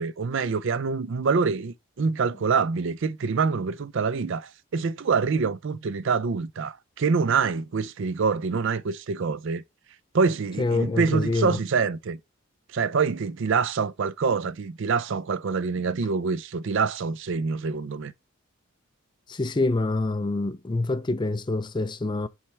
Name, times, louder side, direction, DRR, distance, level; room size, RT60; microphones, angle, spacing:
voice 1, 0.0-9.6 10.1-12.2 12.7-18.1, right 5 dB, 60° right, 0.4 m, -26 dB
voice 2, 10.6-11.6 15.7-15.9 19.3-22.3, left 2 dB, 20° left, 0.4 m, -26 dB
7.2 x 3.3 x 4.3 m
head